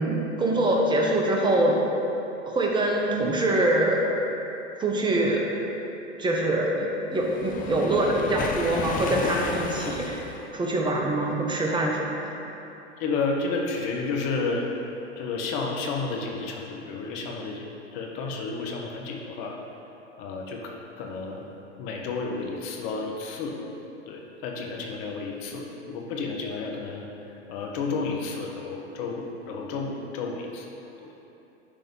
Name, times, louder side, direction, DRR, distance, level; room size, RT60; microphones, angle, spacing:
voice 1, 0.0-1.8 2.5-4.0 4.8-5.4 6.2-10.2 10.5-12.4, right 1 dB, 15° right, -1 dB, 1.1 m, -24 dB
Waves surf, 7.2-10.5, left 5 dB, 25° left, 0.6 m, -33 dB
voice 2, 13.0-14.7 15.2-17.6 17.9-19.6 20.2-20.7 21.0-21.4 21.8-23.6 24.1-27.1 27.5-30.7 31.0-31.1, left 4 dB, 50° left, 0 dB, 1.4 m, -31 dB
10.0 x 3.8 x 5.5 m, 2.9 s
hypercardioid pair, 100°, 35 cm